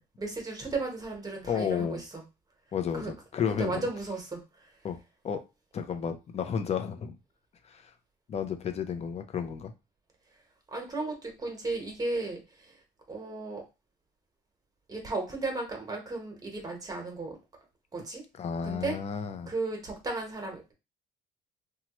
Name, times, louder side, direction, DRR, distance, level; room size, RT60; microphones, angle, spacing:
voice 1, 0.2-2.2 2.9-3.1 3.6-4.7 10.7-12.8 13.1-13.6 14.9-17.4 17.9-18.2 18.6-19.0 19.5-20.7, right 3 dB, 20° right, 1 dB, 1.1 m, -35 dB
voice 2, 1.4-2.0 2.7-3.8 4.8-5.0 5.2-5.4 5.7-7.2 7.6-7.9 8.3-9.7 18.4-19.5, left 7 dB, 40° left, 8 dB, 0.6 m, -32 dB
3.0 x 2.3 x 3.0 m, 0.27 s
cardioid pair, 110°, 17 cm